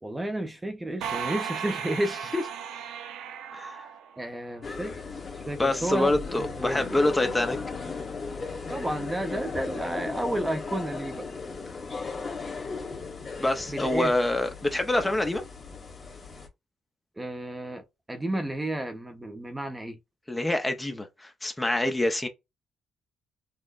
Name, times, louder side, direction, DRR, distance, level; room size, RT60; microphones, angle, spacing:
voice 1, 0.0-2.2 4.2-4.9 5.3-7.0 8.7-11.3 13.7-14.1 17.2-17.8 18.1-20.0, right 1 dB, 15° right, 0.7 m, -31 dB
sound 1, 1.0-4.7, right 7 dB, 90° right, 0.5 m, -36 dB
voice 2, 3.5-3.8 5.6-7.6 13.4-15.4 20.3-22.3, left 1 dB, 15° left, 0.7 m, -26 dB
sound 2, 4.6-16.5, left 4 dB, 35° left, 1.5 m, -37 dB
6.2 x 2.2 x 2.5 m
cardioid pair, 90°, 0 cm